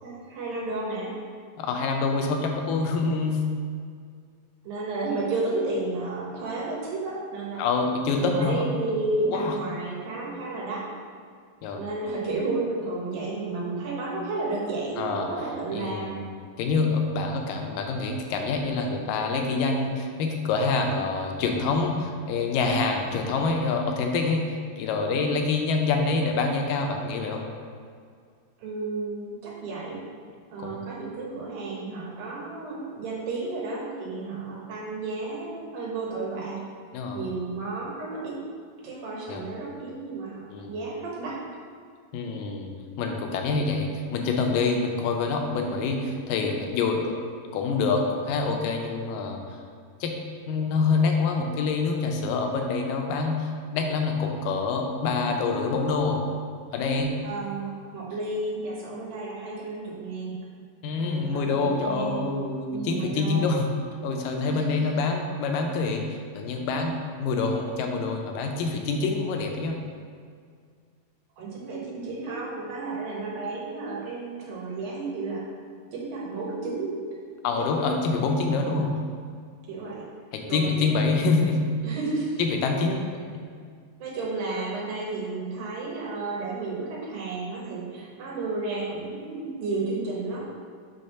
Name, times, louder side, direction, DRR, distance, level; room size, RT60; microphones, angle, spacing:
voice 1, 0.0-1.1 4.6-7.6 8.1-10.9 11.7-16.2 28.6-30.0 30.5-36.6 37.1-38.4 38.8-41.4 57.2-60.4 60.9-62.4 62.7-63.5 64.5-64.9 71.4-75.4 75.9-77.0 77.6-78.0 78.6-78.8 79.7-80.1 80.5-80.9 81.8-82.4 84.0-90.5, right 3 dB, 85° right, -4 dB, 3.0 m, -32 dB
voice 2, 1.6-3.4 7.6-8.6 9.3-9.6 11.6-11.8 15.0-15.3 15.7-16.2 16.6-27.5 30.6-30.8 36.9-37.3 39.3-39.4 40.5-40.7 42.1-42.7 43.0-47.1 47.5-49.6 50.0-50.1 50.5-56.2 56.7-57.1 60.8-63.7 64.0-69.8 77.4-78.9 80.3-81.6 82.4-83.0, left 4 dB, 85° left, 2 dB, 2.3 m, -26 dB
6.4 x 3.6 x 5.7 m, 2.1 s
omnidirectional pair, 4.0 m